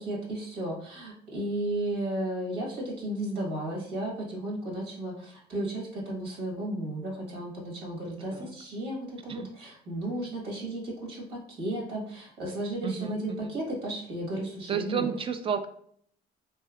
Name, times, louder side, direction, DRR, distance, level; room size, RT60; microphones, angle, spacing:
voice 1, 0.0-15.1, right 1 dB, 80° right, -1 dB, 1.4 m, -34 dB
voice 2, 12.8-13.5 14.7-15.7, right 7 dB, 30° right, 9 dB, 0.3 m, -31 dB
3.2 x 2.7 x 2.3 m, 0.62 s
cardioid pair, 110°, 17 cm